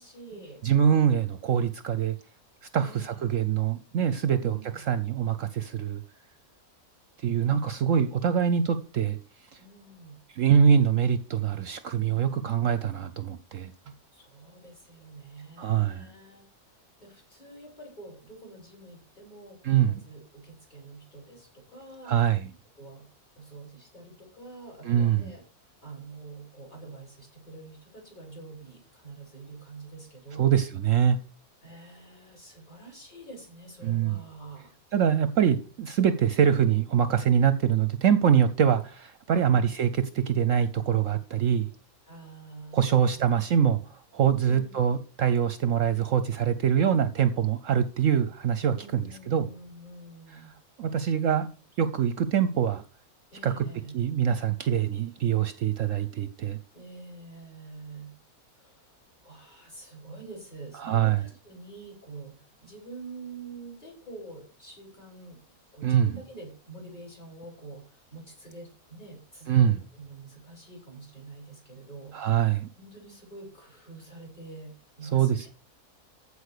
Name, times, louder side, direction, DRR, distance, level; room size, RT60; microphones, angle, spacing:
voice 1, 0.0-0.6 2.8-3.3 4.3-4.9 9.6-10.2 14.1-16.5 17.0-22.3 22.8-23.1 23.4-25.4 25.8-30.6 31.6-34.7 42.1-43.2 44.4-44.9 48.7-50.5 53.3-54.0 56.7-58.1 58.6-58.9 59.2-65.4 65.7-72.5 72.8-75.5, right 3 dB, 30° left, -1 dB, 7.0 m, -46 dB
voice 2, 0.6-2.2 2.7-6.0 7.2-9.2 10.3-13.7 15.6-16.1 19.6-20.0 22.1-22.5 24.8-25.3 30.4-31.2 33.8-34.2 34.9-41.7 42.7-43.8 44.1-49.5 50.8-51.5 51.8-52.8 53.4-53.6 53.9-56.6 60.8-61.2 65.8-66.1 69.5-69.8 72.1-72.7 75.1-75.5, right 8 dB, 65° right, 12 dB, 1.0 m, -24 dB
15.0 x 5.0 x 6.6 m, 0.38 s
omnidirectional pair, 1.6 m